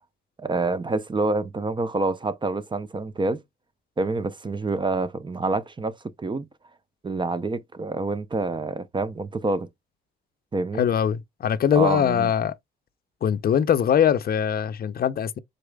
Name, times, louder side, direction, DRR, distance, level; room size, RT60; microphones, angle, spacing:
voice 1, 0.4-3.4 4.0-6.5 7.0-9.7 10.5-10.8 11.7-12.3, right 3 dB, 25° right, 0.6 m, -27 dB
voice 2, 10.8-12.5 13.2-15.4, left 8 dB, 50° left, 0.5 m, -22 dB
4.8 x 3.9 x 2.2 m
cardioid pair, 90°, 20 cm